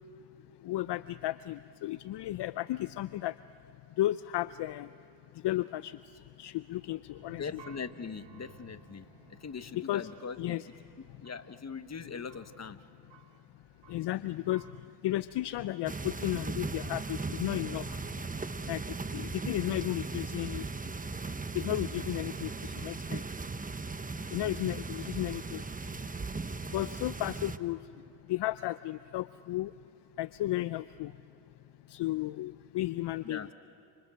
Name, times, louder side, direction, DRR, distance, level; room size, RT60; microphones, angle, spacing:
voice 1, 0.6-3.4 4.0-4.9 5.4-6.0 6.4-7.6 9.7-10.1 10.4-10.7 13.9-14.7 15.0-18.0 18.7-20.7 21.5-23.2 24.3-25.6 26.7-27.8 28.3-29.7 30.2-31.1 31.9-33.5, left 15 dB, 55° left, 16 dB, 0.7 m, -34 dB
sound 1, 7.1-14.8, right 10 dB, 60° right, 1.6 m, -58 dB
voice 2, 7.4-10.5 11.2-12.8 33.2-33.5, left 5 dB, 30° left, 11 dB, 1.5 m, -41 dB
sound 2, 15.9-27.6, right 4 dB, 15° right, 1.1 m, -38 dB
30.0 x 28.0 x 6.4 m, 2.9 s
supercardioid pair, 60°, 49 cm